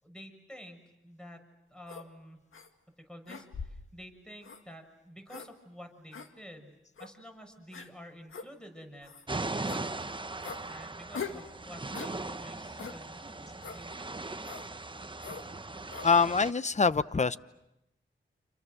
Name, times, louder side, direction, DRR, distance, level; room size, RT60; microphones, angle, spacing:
voice 1, 0.0-1.4 1.7-2.4 3.0-6.7 7.0-9.1 10.7-13.9, equal, 5° left, 5 dB, 6.5 m, -50 dB
sound 1, 1.9-2.1 2.5-2.7 3.3-3.9 4.4-4.6 5.3-5.5 6.1-6.3 7.0-7.1 7.7-7.9 8.3-8.5 9.0-9.2 9.7-9.8 10.4-10.6 11.1-11.4 11.9-12.2 12.8-13.0 13.6-13.8 14.4-14.7 15.2-15.4 15.9-16.1, left 5 dB, 80° left, 2.2 m, -41 dB
sound 2, 9.3-16.5, right 2 dB, 25° right, 1.1 m, -39 dB
voice 2, 16.0-17.4, left 5 dB, 35° left, 15 dB, 1.0 m, -24 dB
29.5 x 28.0 x 6.6 m, 0.91 s
cardioid pair, 45°, 21 cm